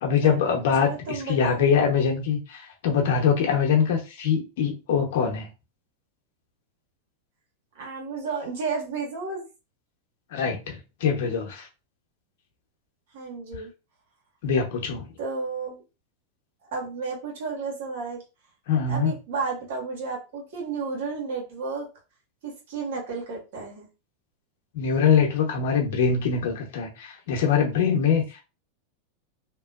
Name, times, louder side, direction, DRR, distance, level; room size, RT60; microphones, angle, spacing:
voice 1, 0.0-5.5 10.3-11.7 14.4-15.1 18.7-19.1 24.7-28.4, left 6 dB, 65° left, 0.9 m, -23 dB
voice 2, 0.8-1.6 7.7-9.4 13.1-13.7 15.2-15.8 16.7-18.2 18.9-21.9 22.4-23.9, right 4 dB, 70° right, 1.5 m, -32 dB
2.9 x 2.4 x 2.4 m
hypercardioid pair, 100°, 0 cm